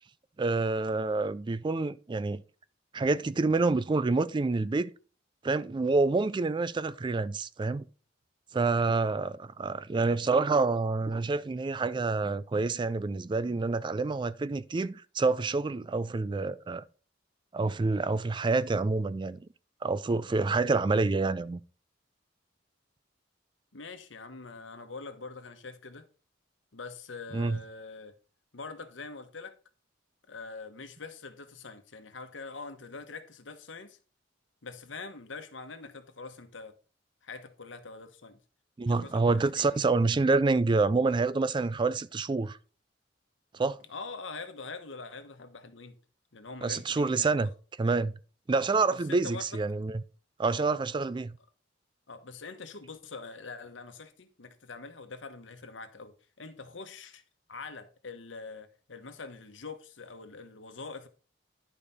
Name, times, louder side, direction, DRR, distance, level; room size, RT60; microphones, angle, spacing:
voice 1, 0.4-2.4 2.9-4.9 5.4-7.9 8.5-16.8 17.5-19.4 19.8-21.6 27.3-27.6 38.8-42.6 43.5-43.8 46.6-47.5 47.8-48.2 48.5-50.0 50.4-51.4, right 3 dB, 25° right, 0.3 m, -27 dB
voice 2, 23.7-26.1 26.7-28.1 28.5-29.6 30.3-34.0 34.6-36.7 37.2-38.4 38.9-39.8 43.9-46.0 46.3-47.5 48.5-49.6 52.1-57.2 57.5-61.1, left 4 dB, 80° left, 1.2 m, -44 dB
11.0 x 5.0 x 4.1 m
head